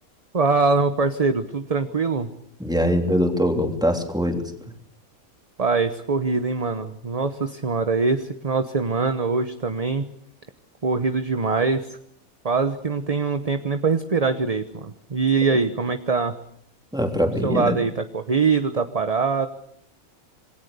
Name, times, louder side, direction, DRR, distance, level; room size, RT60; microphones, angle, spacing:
voice 1, 0.3-2.3 5.6-10.1 10.8-12.0 12.4-16.4 17.4-19.5, right 4 dB, 30° right, 8 dB, 1.0 m, -23 dB
voice 2, 2.6-4.5 16.9-17.8, equal, 5° right, 4 dB, 3.1 m, -22 dB
27.0 x 21.5 x 6.9 m, 0.67 s
omnidirectional pair, 1.5 m